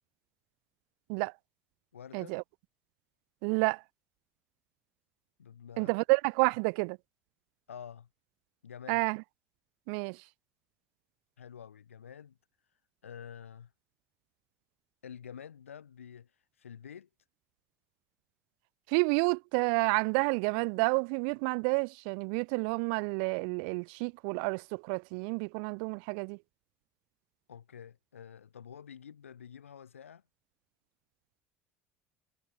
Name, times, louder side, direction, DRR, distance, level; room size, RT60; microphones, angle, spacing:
voice 1, 1.9-2.4 5.4-6.0 7.7-8.1 8.6-9.1 11.4-12.4 13.0-13.7 15.0-16.3 16.6-17.1 27.5-30.2, left 8 dB, 85° left, 2.1 m, -48 dB
voice 2, 3.4-3.8 5.8-7.0 8.9-9.2 9.9-10.2 18.9-26.4, right 40 dB or more, 65° right, 0.3 m, -29 dB
hypercardioid pair, 65°, 7 cm